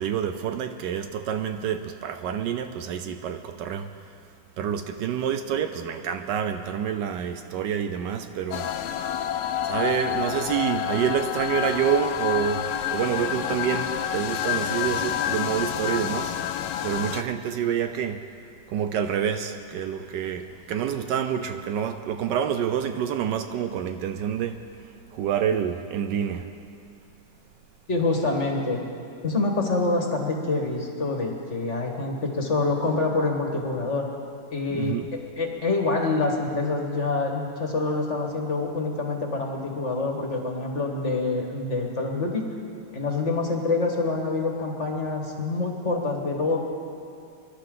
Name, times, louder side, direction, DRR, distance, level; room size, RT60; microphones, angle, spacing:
voice 1, 0.0-3.9 4.6-8.7 9.6-16.3 16.8-18.2 18.7-24.6 25.1-26.5 34.7-35.1, right 8 dB, 75° right, 8 dB, 1.2 m, -27 dB
sound 1, 8.5-17.2, left 10 dB, 75° left, 1.2 m, -28 dB
voice 2, 27.9-28.8 29.2-34.1 34.5-35.0 35.4-42.4 42.9-46.6, left 3 dB, 40° left, 1 dB, 1.7 m, -26 dB
25.0 x 11.5 x 3.8 m, 2.6 s
omnidirectional pair, 2.1 m